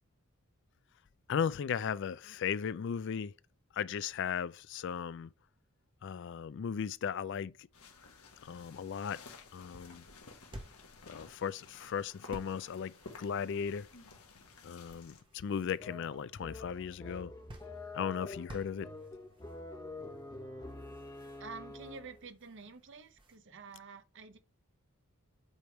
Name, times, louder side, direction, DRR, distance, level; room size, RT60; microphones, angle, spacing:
voice 1, 1.3-3.3 3.7-5.3 6.0-7.7 8.4-9.2 9.5-10.0 11.0-13.9 14.6-17.3 17.9-18.9, left 7 dB, 55° left, 0.3 m, -36 dB
sound 1, 7.7-15.2, left 4 dB, 90° left, 1.4 m, -55 dB
sound 2, 9.3-23.4, right 1 dB, 20° right, 1.1 m, -56 dB
sound 3, 15.8-22.3, left 2 dB, 15° left, 1.2 m, -47 dB
voice 2, 21.4-24.4, right 4 dB, 55° right, 0.9 m, -49 dB
8.1 x 3.4 x 4.5 m
head